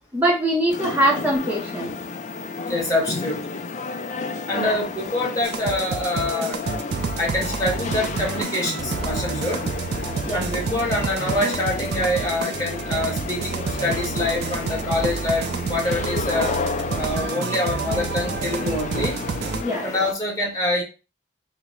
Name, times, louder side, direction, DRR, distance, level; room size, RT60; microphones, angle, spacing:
voice 1, 0.1-1.9 4.5-4.8 10.3-10.5 19.6-19.9, right 1 dB, 10° right, -4 dB, 0.6 m, -22 dB
sound 1, 0.7-20.1, left 4 dB, 35° left, 0.3 m, -32 dB
voice 2, 2.7-3.6 4.5-6.6 7.2-9.6 10.3-16.5 16.9-19.2 19.8-20.8, left 1 dB, 15° left, -3 dB, 1.2 m, -25 dB
sound 2, 5.4-19.6, right 5 dB, 50° right, 0.4 m, -29 dB
4.4 x 2.1 x 3.7 m, 0.31 s
head